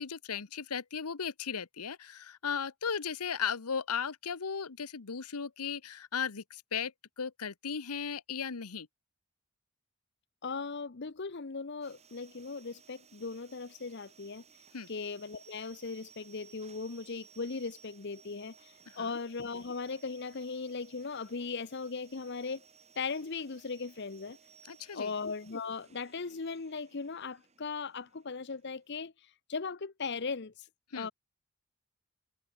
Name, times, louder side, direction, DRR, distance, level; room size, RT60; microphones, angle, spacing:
voice 1, 0.0-8.9 14.7-14.9 18.9-19.2 24.6-25.1 30.9-31.1, left 6 dB, 90° left, 1.0 m, -36 dB
voice 2, 10.4-14.4 14.9-22.6 23.0-24.4 24.9-29.1 29.5-30.7 30.9-31.1, left 4 dB, 50° left, 0.8 m, -38 dB
sound 1, 11.8-29.1, right 7 dB, 30° right, 4.4 m, -60 dB
head